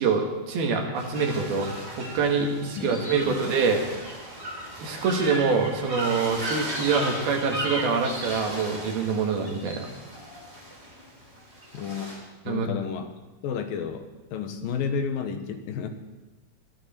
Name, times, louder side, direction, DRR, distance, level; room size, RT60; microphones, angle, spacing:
voice 1, 0.0-1.7 2.0-3.8 4.8-9.9 12.5-12.7, right 5 dB, 90° right, 2 dB, 3.9 m, -25 dB
sound 1, 0.9-12.2, right 1 dB, 15° right, 4.1 m, -36 dB
voice 2, 11.7-12.1 12.5-13.1 13.4-14.1 14.3-15.9, left 6 dB, 75° left, 7 dB, 2.9 m, -31 dB
21.0 x 14.0 x 4.5 m, 1.2 s
omnidirectional pair, 4.2 m